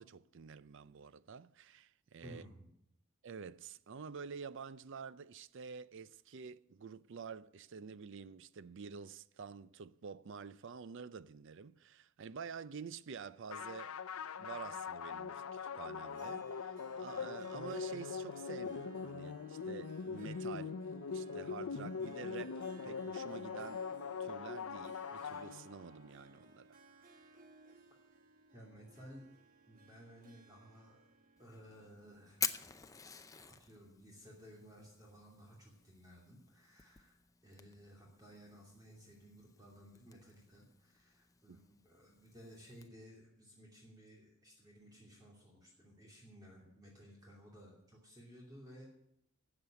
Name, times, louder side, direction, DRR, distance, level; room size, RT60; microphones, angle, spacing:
voice 1, 0.0-2.5 3.2-13.9 14.4-23.9 24.2-26.8 41.5-41.6, right 6 dB, 60° right, 0.5 m, -49 dB
voice 2, 2.2-2.7 28.5-29.3 29.7-31.1 31.4-32.7 33.5-37.2 37.4-48.9, equal, 20° right, 2.8 m, -57 dB
sound 1, 13.5-26.1, left 5 dB, 85° left, 0.6 m, -42 dB
Harp, 16.0-32.5, right 2 dB, 40° right, 1.2 m, -61 dB
Fire, 31.4-42.9, left 6 dB, 15° left, 0.6 m, -48 dB
12.5 x 8.0 x 9.1 m
head